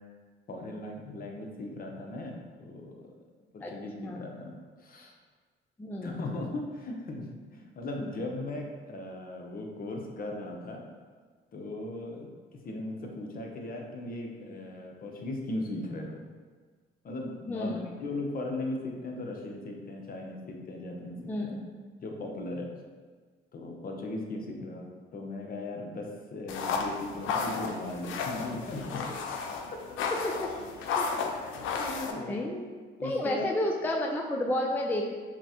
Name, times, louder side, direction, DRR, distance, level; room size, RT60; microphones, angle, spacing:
voice 1, 0.5-3.2 3.5-5.1 6.0-10.8 11.5-12.3 12.6-16.2 17.0-21.5 22.0-22.7 23.5-29.4 31.3-32.4 33.0-33.5, left 2 dB, 45° left, 1 dB, 0.7 m, -38 dB
voice 2, 4.0-4.3 5.8-6.2 17.5-17.9 21.3-21.6 30.2-30.5 31.0-31.1 32.3-32.7 33.0-35.1, left 1 dB, 10° left, 0 dB, 0.3 m, -31 dB
sound 1, 26.5-32.1, left 5 dB, 85° left, 0.4 m, -33 dB
5.9 x 2.1 x 2.9 m, 1.5 s
cardioid pair, 90°, 20 cm